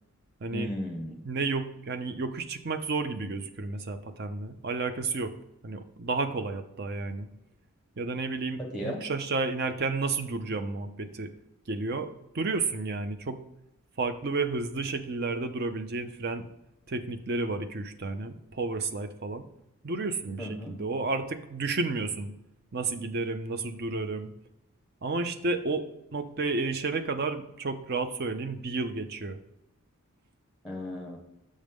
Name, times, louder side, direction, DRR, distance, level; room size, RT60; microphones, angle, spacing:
voice 1, 0.5-1.2 8.6-9.1 20.4-20.8 30.6-31.2, equal, ahead, 0 dB, 1.1 m, -35 dB
voice 2, 1.2-5.3 5.6-7.3 8.0-11.3 11.7-13.4 14.0-16.5 16.9-19.4 19.8-22.3 22.7-24.3 25.0-25.9 26.1-29.4, right 3 dB, 45° right, 9 dB, 0.5 m, -31 dB
6.4 x 6.4 x 3.5 m, 0.87 s
head